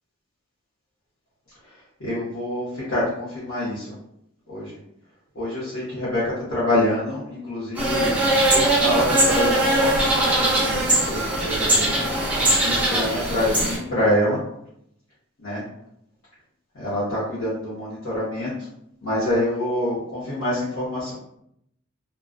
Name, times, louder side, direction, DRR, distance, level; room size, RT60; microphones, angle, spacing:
voice 1, 2.0-3.9 4.5-4.8 5.3-8.2 8.5-12.1 12.6-14.4 15.4-15.6 16.7-18.5 19.0-21.1, left 1 dB, 60° left, -11 dB, 0.9 m, -26 dB
sound 1, 7.7-13.8, right 1 dB, 5° right, 0.5 m, -20 dB
2.3 x 2.2 x 2.4 m, 0.75 s
head